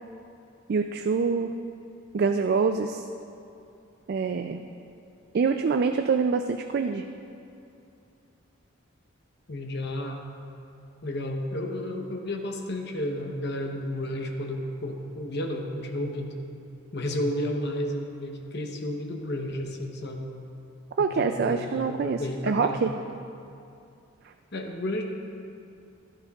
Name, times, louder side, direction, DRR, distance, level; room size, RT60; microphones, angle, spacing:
voice 1, 0.7-1.5 2.1-3.1 4.1-4.6 5.3-7.1 21.0-22.9, right 5 dB, 50° right, 6 dB, 0.3 m, -25 dB
voice 2, 9.5-10.3 11.0-16.4 16.9-20.3 21.0-22.8 24.5-25.0, left 1 dB, 55° left, 2 dB, 0.9 m, -32 dB
15.0 x 12.5 x 2.4 m, 2.6 s
head